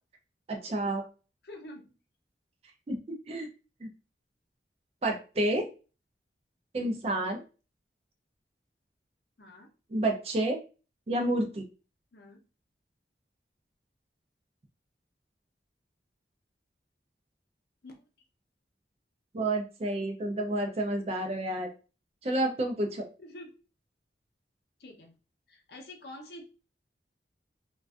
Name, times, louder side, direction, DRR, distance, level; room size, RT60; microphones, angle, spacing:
voice 1, 0.5-1.0 2.9-3.5 3.8-3.9 5.0-5.7 6.7-7.4 9.9-10.6 11.1-11.6 19.3-21.7 22.2-23.1, right 1 dB, 35° right, 3 dB, 0.4 m, -30 dB
voice 2, 1.4-1.8 9.4-9.7 12.1-12.4 17.8-18.1 23.2-23.5 24.8-25.2 25.5-26.4, left 1 dB, 65° left, 2 dB, 0.6 m, -47 dB
2.4 x 2.2 x 2.3 m, 0.34 s
head